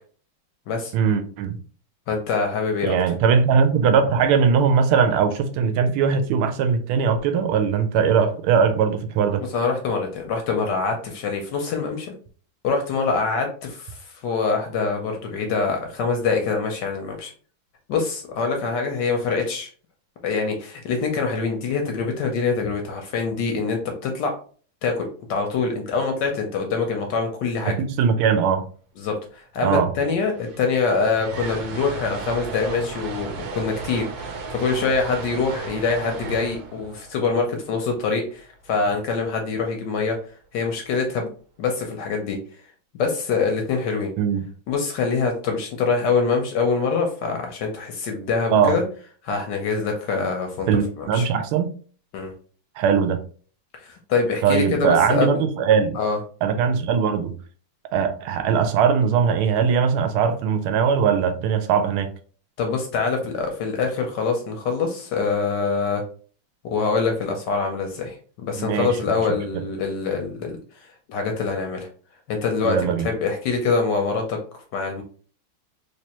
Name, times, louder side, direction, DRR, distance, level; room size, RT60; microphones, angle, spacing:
voice 1, 0.9-1.6 2.8-9.4 28.0-28.7 29.6-29.9 44.2-44.5 48.5-48.8 50.7-51.7 52.8-53.2 54.4-56.0 56.4-57.3 57.9-62.1 68.6-69.0 72.6-73.1, right 6 dB, 85° right, 1.5 m, -20 dB
voice 2, 2.1-2.9 9.5-12.1 12.6-17.3 17.9-19.7 20.2-24.4 24.8-27.8 29.0-40.2 40.5-41.3 41.6-42.4 43.0-44.1 44.7-48.8 49.2-51.3 52.1-52.3 53.8-55.4 55.9-56.2 62.6-66.0 66.6-71.9 72.3-74.4 74.7-75.0, left 4 dB, 70° left, 1.1 m, -24 dB
sound 1, 30.2-38.3, right 4 dB, 65° right, 1.1 m, -35 dB
3.3 x 3.2 x 2.9 m
omnidirectional pair, 2.3 m